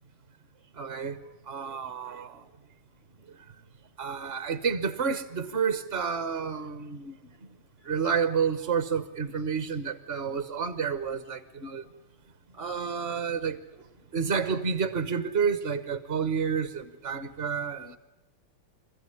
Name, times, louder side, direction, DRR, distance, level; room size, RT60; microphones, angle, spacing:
voice 1, 0.8-1.2 1.5-2.4 4.0-7.2 7.8-11.8 12.6-13.6 14.1-18.0, right 6 dB, 55° right, 0.6 m, -30 dB
26.0 x 14.5 x 9.9 m
omnidirectional pair, 2.4 m